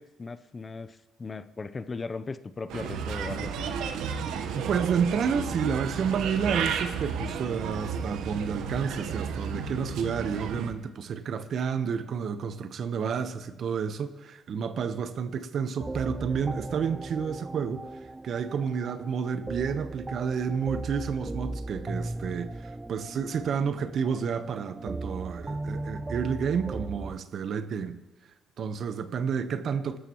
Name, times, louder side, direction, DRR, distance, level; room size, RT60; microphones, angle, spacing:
voice 1, 0.0-3.7, left 4 dB, 30° left, 0.7 m, -38 dB
Bird, 2.7-10.7, right 6 dB, 90° right, 1.2 m, -32 dB
voice 2, 4.5-17.9 18.2-28.0 28.6-30.0, right 6 dB, 60° right, 1.0 m, -30 dB
sound 1, 15.8-27.2, right 2 dB, 20° right, 0.4 m, -37 dB
26.5 x 13.0 x 3.1 m
cardioid pair, 90°, 0 cm